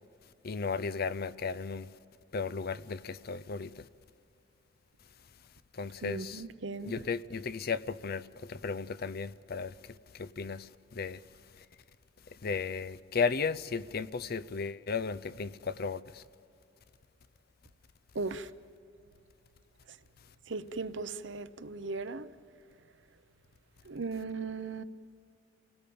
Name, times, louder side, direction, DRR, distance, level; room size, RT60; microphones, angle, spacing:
voice 1, 0.4-1.9 2.3-3.9 5.7-6.4 6.8-11.2 11.6-11.7 12.3-16.2, left 5 dB, 55° left, 0.6 m, -35 dB
voice 2, 6.0-7.1 18.1-18.5 20.5-22.3 23.9-24.8, right 3 dB, 70° right, 0.8 m, -37 dB
29.0 x 18.5 x 8.7 m
head